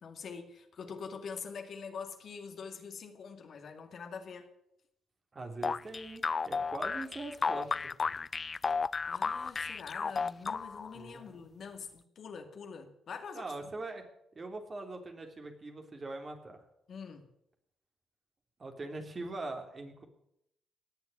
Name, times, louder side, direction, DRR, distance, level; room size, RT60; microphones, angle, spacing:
voice 1, 0.0-4.5 9.0-13.5 16.9-17.2, left 5 dB, 60° left, 5 dB, 2.3 m, -44 dB
voice 2, 5.3-7.7 8.0-8.2 10.9-11.4 13.3-14.0 14.3-16.6 18.6-20.0, right 2 dB, 40° right, 4 dB, 3.3 m, -42 dB
sound 1, 5.6-10.9, left 5 dB, 40° left, 0.5 m, -33 dB
19.0 x 7.0 x 9.6 m, 0.77 s
hypercardioid pair, 50°, 0 cm